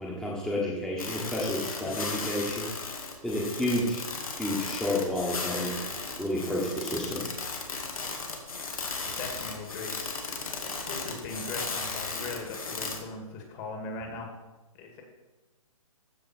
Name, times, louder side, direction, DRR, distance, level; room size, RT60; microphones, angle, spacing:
voice 1, 0.0-2.7 3.2-4.0 4.4-5.8 6.2-7.3, left 1 dB, 5° left, -4 dB, 1.4 m, -30 dB
sound 1, 1.0-13.0, left 4 dB, 75° left, 2.2 m, -36 dB
voice 2, 9.0-10.2 10.4-10.6 10.9-14.3 14.7-15.0, left 3 dB, 30° left, 2 dB, 2.2 m, -39 dB
14.0 x 5.4 x 4.4 m, 1.1 s
hypercardioid pair, 140°, 18 cm